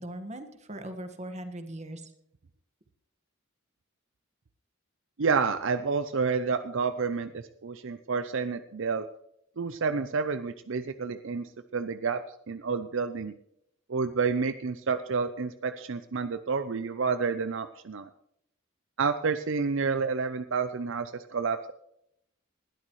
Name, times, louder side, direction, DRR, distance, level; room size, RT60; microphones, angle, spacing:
voice 1, 0.0-2.1, right 1 dB, 35° right, 8 dB, 1.6 m, -39 dB
voice 2, 5.2-9.1 9.6-12.2 12.5-13.3 13.9-18.1 19.0-21.7, right 5 dB, 65° right, 11 dB, 0.6 m, -29 dB
20.0 x 12.5 x 3.2 m, 0.74 s
head